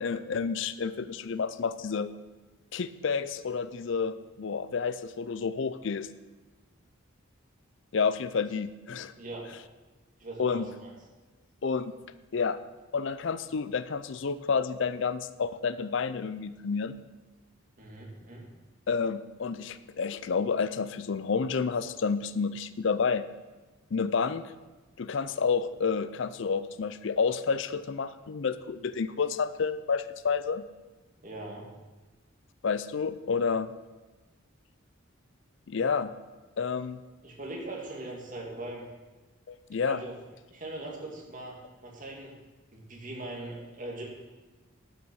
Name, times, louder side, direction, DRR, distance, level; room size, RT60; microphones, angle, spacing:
voice 1, 0.0-2.1 2.7-6.1 7.9-9.1 10.4-10.7 11.6-11.9 12.3-12.6 12.9-17.0 18.9-23.2 23.9-24.5 25.0-30.6 32.6-33.7 35.7-36.1 36.6-37.0 39.5-40.0, left 5 dB, 60° left, 14 dB, 0.5 m, -30 dB
voice 2, 9.2-9.5 10.2-10.9 17.8-18.5 31.2-31.7 37.2-38.9 39.8-40.1 40.5-42.3 42.7-44.1, right 2 dB, 40° right, -2 dB, 2.4 m, -40 dB
12.0 x 6.0 x 6.3 m, 1.2 s
head